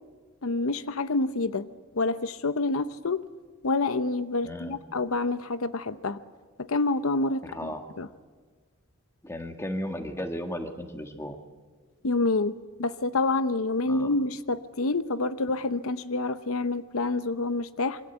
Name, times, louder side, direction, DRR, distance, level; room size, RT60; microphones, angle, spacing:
voice 1, 0.4-1.7 2.0-3.2 3.6-6.2 6.6-7.7 8.0-8.1 12.0-18.0, left 3 dB, 75° left, 13 dB, 0.7 m, -27 dB
voice 2, 4.4-4.8 7.4-7.8 9.2-11.4 13.9-14.1, equal, 10° left, 5 dB, 1.7 m, -35 dB
26.5 x 23.0 x 8.2 m, 1.5 s
head